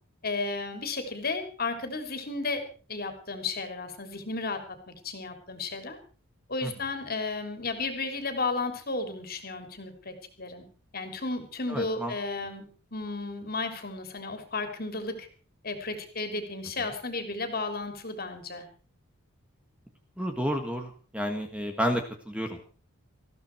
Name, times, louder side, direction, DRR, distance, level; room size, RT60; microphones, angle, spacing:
voice 1, 0.2-2.6 2.9-6.0 6.5-10.6 10.9-15.3 15.6-18.6, left 3 dB, 40° left, 7 dB, 3.2 m, -33 dB
voice 2, 11.7-12.1 20.2-22.6, equal, 5° right, 4 dB, 1.7 m, -31 dB
20.0 x 15.0 x 4.6 m, 0.39 s
head